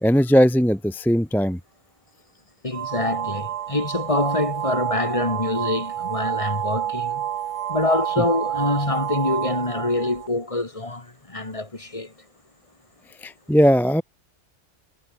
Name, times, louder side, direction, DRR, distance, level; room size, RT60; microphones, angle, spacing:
voice 1, 0.0-1.6 13.2-14.0, equal, ahead, 0.5 m, -18 dB
voice 2, 2.6-7.3 7.7-12.1, left 2 dB, 25° left, 2.2 m, -25 dB
sound 1, 2.7-10.3, right 11 dB, 80° right, 1.1 m, -29 dB
omnidirectional pair, 1.2 m